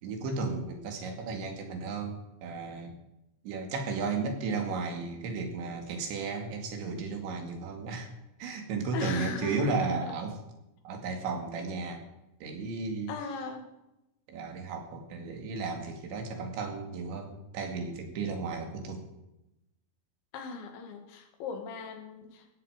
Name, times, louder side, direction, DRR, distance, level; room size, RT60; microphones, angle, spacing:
voice 1, 0.0-2.9 3.4-8.1 8.4-10.3 10.8-12.0 12.4-13.1 14.3-19.1, right 4 dB, 80° right, 4 dB, 4.7 m, -34 dB
voice 2, 8.9-10.1 13.1-13.7 20.3-22.5, left 4 dB, 80° left, 5 dB, 4.3 m, -38 dB
17.5 x 15.5 x 5.1 m, 0.90 s
omnidirectional pair, 5.2 m